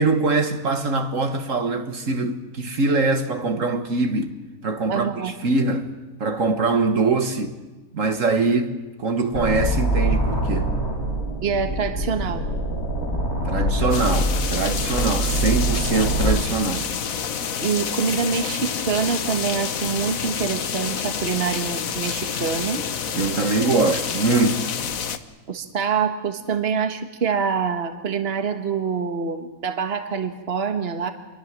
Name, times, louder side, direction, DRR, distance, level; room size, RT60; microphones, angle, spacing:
voice 1, 0.0-4.4 4.6-7.5 7.9-10.7 13.5-16.9 23.1-24.7, right 3 dB, 60° right, 1.9 m, -23 dB
voice 2, 4.9-5.3 11.4-12.4 17.6-22.8 25.5-31.1, right 6 dB, 45° right, 1.6 m, -25 dB
sound 1, 9.3-16.4, right 1 dB, 85° left, 8.0 m, -24 dB
sound 2, 13.9-25.2, left 7 dB, 70° left, 1.5 m, -28 dB
27.5 x 22.0 x 7.5 m
omnidirectional pair, 1.5 m